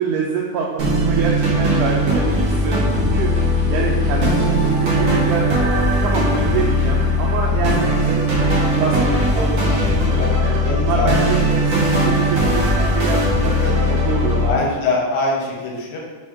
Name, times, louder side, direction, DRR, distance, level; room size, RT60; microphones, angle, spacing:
voice 1, 0.0-5.5 6.0-8.3 8.7-13.6 14.0-14.5, right 5 dB, 85° right, -2 dB, 2.1 m, -25 dB
sound 1, 0.8-14.5, equal, 65° right, 1.1 m, -18 dB
voice 2, 10.6-11.4 13.6-13.7 14.5-16.0, left 2 dB, 75° left, -2 dB, 2.2 m, -23 dB
5.1 x 2.7 x 3.5 m, 1.3 s
omnidirectional pair, 3.5 m